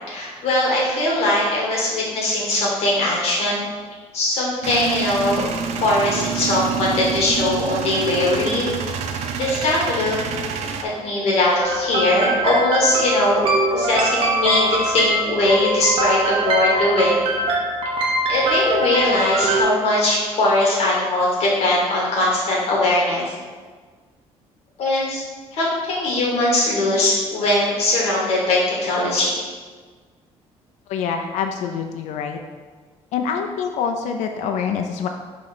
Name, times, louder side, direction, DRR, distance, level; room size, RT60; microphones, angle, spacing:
voice 1, 0.1-3.6 4.1-5.5 5.8-8.7 9.4-10.2 10.8-13.4 13.7-17.3 18.3-23.3 24.8-25.2 25.5-29.3, left 1 dB, 60° left, -4 dB, 1.7 m, -20 dB
Male speech man speaking / Vehicle / Engine starting, 4.6-10.8, right 6 dB, 70° right, 0.6 m, -27 dB
sound 1, 11.6-19.6, right 1 dB, 55° right, 1.2 m, -22 dB
voice 2, 30.9-32.4 33.1-35.1, left 6 dB, 80° left, 4 dB, 0.5 m, -25 dB
6.2 x 3.2 x 5.9 m, 1.5 s
cardioid pair, 150°, 12 cm